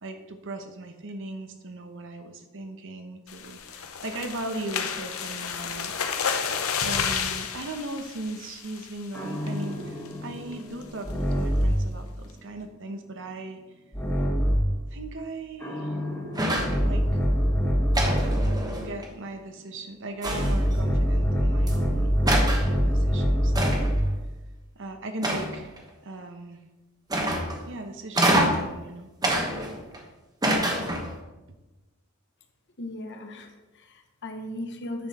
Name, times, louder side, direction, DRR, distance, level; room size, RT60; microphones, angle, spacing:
voice 1, 0.0-6.0 6.8-13.6 14.9-16.0 16.8-17.2 18.8-23.8 24.7-25.8 26.0-26.6 27.7-29.1, right 2 dB, 60° right, 6 dB, 1.0 m, -38 dB
sound 1, 3.3-9.0 9.5-9.7 10.1-10.2 10.5-10.8, left 7 dB, 75° left, 0.8 m, -31 dB
sound 2, 9.1-11.9 13.9-14.8 15.6-18.6 20.2-24.1, equal, 10° left, 1.5 m, -25 dB
sound 3, 16.3-16.8 17.9-19.1 20.2-20.7 21.7-21.8 22.3-22.7 23.5-24.0 25.2-25.8 27.1-27.6 28.1-28.7 29.2-30.0 30.4-31.2, right 1 dB, 20° right, 1.1 m, -26 dB
voice 2, 32.8-35.1, left 1 dB, 60° left, 5 dB, 1.1 m, -37 dB
9.6 x 6.0 x 4.3 m, 1.1 s
head